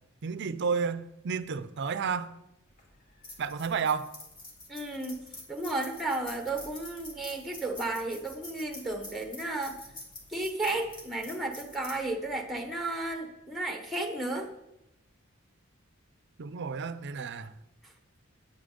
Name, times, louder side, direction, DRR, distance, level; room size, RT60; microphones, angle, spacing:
voice 1, 0.2-2.3 3.4-4.1 16.4-17.5, right 5 dB, 55° right, 0.5 m, -31 dB
sound 1, 2.7-13.1, left 2 dB, 40° left, 2.4 m, -48 dB
voice 2, 4.7-5.2 5.5-9.8 10.3-14.5, right 2 dB, ahead, 0.9 m, -33 dB
9.2 x 8.7 x 3.8 m
head